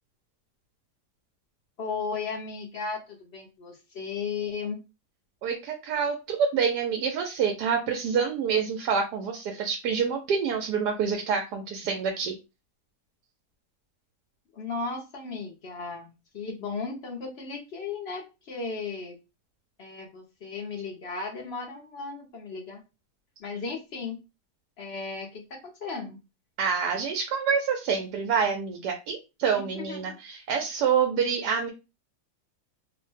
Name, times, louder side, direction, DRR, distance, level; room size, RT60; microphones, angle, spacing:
voice 1, 1.8-4.8 14.5-19.1 19.8-22.8 23.4-24.2 24.8-26.2 29.6-30.2, left 4 dB, 55° left, 1 dB, 0.7 m, -35 dB
voice 2, 5.4-12.3 26.6-31.7, right 6 dB, 85° right, 3 dB, 1.2 m, -27 dB
3.0 x 2.1 x 3.1 m, 0.28 s
omnidirectional pair, 1.7 m